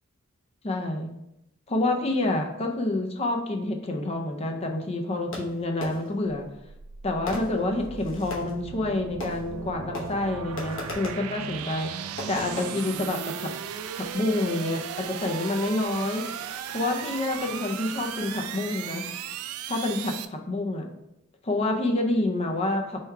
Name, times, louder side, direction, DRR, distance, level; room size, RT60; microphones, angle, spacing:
voice 1, 0.6-1.1 1.7-6.5 7.0-11.9 12.3-13.5 14.0-16.3 16.7-19.0 19.7-20.9 21.4-23.0, left 2 dB, 30° left, 3 dB, 0.4 m, -28 dB
Fireworks, 5.3-6.3 7.3-8.6 9.2-9.7 9.9-11.3 12.2-12.7, left 2 dB, 65° left, 0.9 m, -37 dB
sound 1, 6.4-20.3, right 8 dB, 90° right, 0.3 m, -37 dB
4.5 x 2.3 x 4.6 m, 0.85 s
head